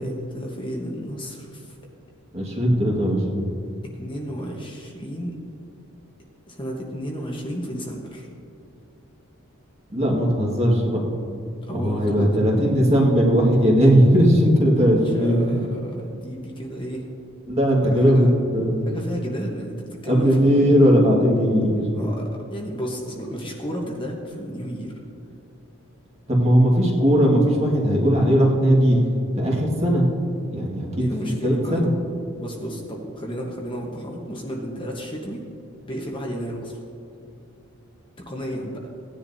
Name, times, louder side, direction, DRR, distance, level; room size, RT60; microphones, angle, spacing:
voice 1, 0.0-1.8 3.9-5.4 6.5-8.3 11.6-12.4 14.9-17.1 17.8-18.3 18.9-20.6 21.9-24.9 31.0-31.9 32.3-35.4 35.9-36.7 38.3-38.8, equal, 25° left, -1 dB, 1.1 m, -32 dB
voice 2, 2.3-3.4 9.9-11.0 11.7-15.6 17.5-18.3 18.5-18.8 20.1-21.8 26.3-29.0 29.4-30.1 30.5-31.0 31.4-31.9, equal, 30° right, -2 dB, 1.7 m, -18 dB
17.0 x 10.0 x 2.7 m, 2.7 s
head